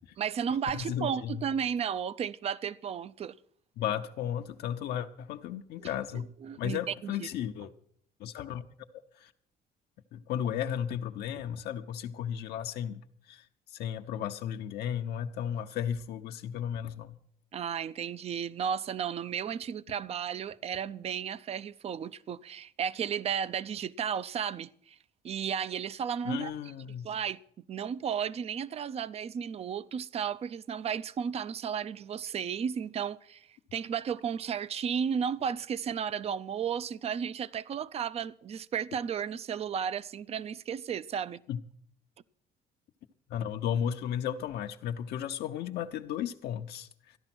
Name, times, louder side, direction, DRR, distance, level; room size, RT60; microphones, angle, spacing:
voice 1, 0.2-3.3 5.8-5.9 6.1-7.3 17.5-25.0 25.2-26.5 27.0-27.4 27.7-41.4, right 7 dB, 35° right, 0.5 m, -34 dB
voice 2, 0.7-1.4 3.8-6.3 6.6-7.7 8.2-8.6 8.9-9.3 10.1-17.2 26.2-27.1 41.5-41.6 43.3-47.2, left 9 dB, 75° left, 0.8 m, -34 dB
14.0 x 11.0 x 6.0 m
cardioid pair, 110°, 17 cm